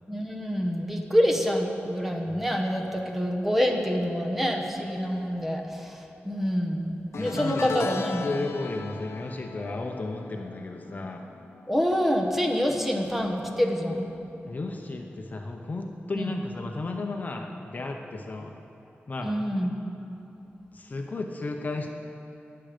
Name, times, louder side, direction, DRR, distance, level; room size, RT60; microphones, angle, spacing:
voice 1, 0.1-8.3 11.7-14.1 16.1-16.3 19.2-19.8, equal, 5° right, 1 dB, 1.1 m, -27 dB
sound 1, 7.1-12.5 12.8-13.2 14.4-14.5, left 4 dB, 85° left, 0.7 m, -38 dB
voice 2, 7.1-11.2 14.5-18.5 19.1-19.3 20.7-21.9, left 2 dB, 40° left, 2 dB, 0.8 m, -34 dB
22.0 x 7.8 x 5.1 m, 3.0 s
wide cardioid pair, 165°, 4 cm